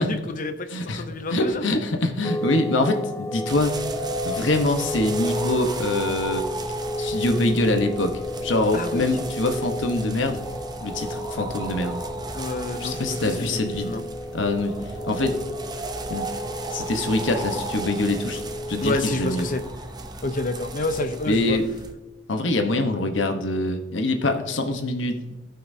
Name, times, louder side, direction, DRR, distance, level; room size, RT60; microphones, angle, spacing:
voice 1, 0.0-0.7 0.9-1.6 8.7-9.3 12.3-14.0 18.8-19.6 20.2-21.6, left 2 dB, 45° left, 9 dB, 0.7 m, -29 dB
voice 2, 0.7-1.0 1.3-3.8 4.2-6.4 7.0-10.4 10.8-12.0 12.8-13.9 14.3-15.4 16.1-16.3 16.7-18.4 18.7-19.4 21.3-21.7 22.3-25.2, left 2 dB, 80° left, 5 dB, 1.1 m, -24 dB
sound 1, 2.2-19.7, equal, 15° left, 0.4 m, -33 dB
sound 2, 3.5-21.9, right 2 dB, 20° right, 0.6 m, -35 dB
16.5 x 5.8 x 2.8 m, 1.1 s
head